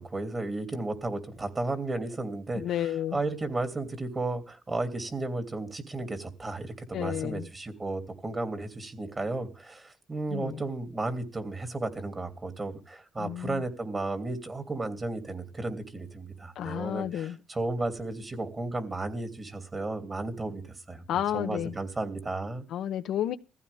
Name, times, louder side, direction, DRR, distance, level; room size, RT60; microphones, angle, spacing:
voice 1, 0.0-22.7, right 2 dB, 30° right, 2.9 m, -34 dB
voice 2, 2.5-3.2 6.9-7.5 10.3-10.6 13.2-13.6 16.6-17.4 21.1-21.7 22.7-23.4, left 11 dB, 90° left, 1.0 m, -31 dB
20.5 x 15.0 x 3.6 m
cardioid pair, 95°, 0 cm